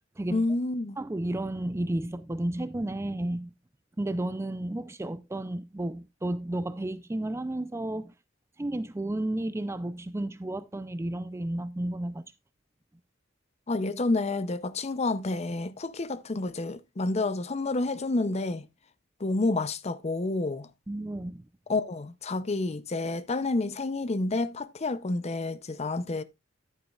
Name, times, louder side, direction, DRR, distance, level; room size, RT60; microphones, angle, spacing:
voice 1, 0.3-1.0 13.7-18.7 19.2-20.7 21.7-26.2, left 2 dB, 35° left, 0.5 m, -29 dB
voice 2, 1.0-3.5 4.0-8.1 8.6-12.3 20.9-21.4, right 1 dB, 15° right, 0.4 m, -32 dB
11.0 x 9.5 x 2.3 m
head